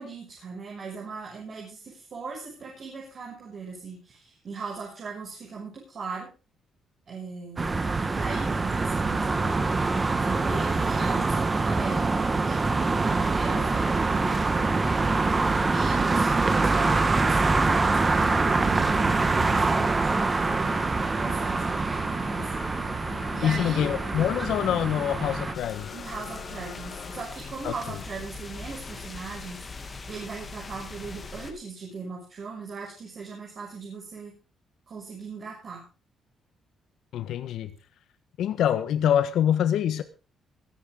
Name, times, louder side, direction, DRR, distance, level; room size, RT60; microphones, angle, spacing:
voice 1, 0.0-6.3 7.1-7.8 8.1-9.7 10.2-12.0 12.5-14.4 15.7-20.8 21.2-22.5 23.3-23.9 25.9-29.6 30.1-34.3 34.9-35.9, right 4 dB, 50° right, -2 dB, 6.7 m, -39 dB
sound 1, 7.6-25.5, right 3 dB, 25° right, 1.9 m, -25 dB
sound 2, 18.9-27.3, left 6 dB, 60° left, 4.3 m, -43 dB
voice 2, 23.4-25.9 27.6-27.7 37.1-37.7 38.4-40.0, left 10 dB, 80° left, 12 dB, 1.5 m, -25 dB
sound 3, 25.5-31.5, left 4 dB, 35° left, 3.0 m, -41 dB
22.0 x 10.5 x 4.0 m, 0.32 s
cardioid pair, 90°, 0 cm